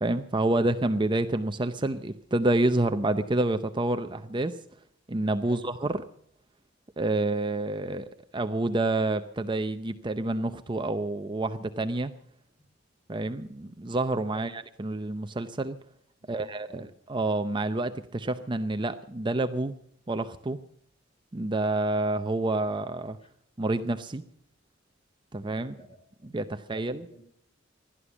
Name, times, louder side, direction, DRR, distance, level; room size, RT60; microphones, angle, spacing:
voice 1, 0.0-4.6 5.1-6.0 7.0-12.1 13.1-15.8 16.3-16.8 17.1-19.7 20.1-20.6 21.3-23.2 23.6-24.2 25.3-25.8 26.2-27.0, right 2 dB, 25° right, 9 dB, 0.6 m, -28 dB
voice 2, 16.2-16.9 23.2-23.3 25.6-27.2, equal, 30° left, 5 dB, 3.6 m, -50 dB
16.5 x 11.5 x 7.1 m, 0.70 s
head